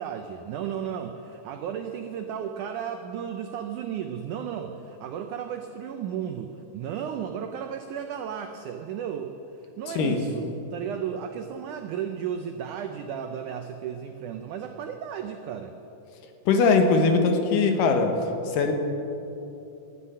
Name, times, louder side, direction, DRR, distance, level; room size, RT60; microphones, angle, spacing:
voice 1, 0.0-9.3 9.6-15.7, right 8 dB, 90° right, 6 dB, 1.7 m, -34 dB
voice 2, 16.5-18.1 18.5-18.7, left 4 dB, 65° left, 5 dB, 2.7 m, -21 dB
18.5 x 13.0 x 5.6 m, 2.9 s
omnidirectional pair, 4.5 m